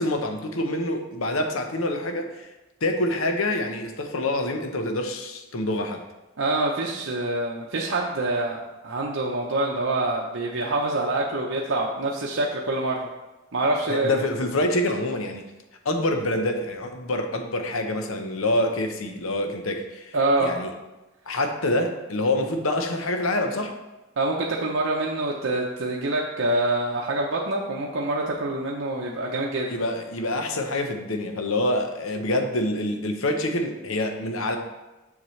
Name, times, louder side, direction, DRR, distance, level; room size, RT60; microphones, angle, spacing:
voice 1, 0.0-2.5 2.8-6.0 13.9-15.4 15.8-20.1 20.4-20.7 21.3-23.7 29.7-34.6, left 1 dB, 85° left, 5 dB, 0.9 m, -26 dB
voice 2, 6.4-13.1 13.5-14.2 20.1-20.5 24.2-29.8, right 2 dB, 70° right, -2 dB, 0.7 m, -26 dB
7.1 x 6.6 x 3.2 m, 1.1 s
head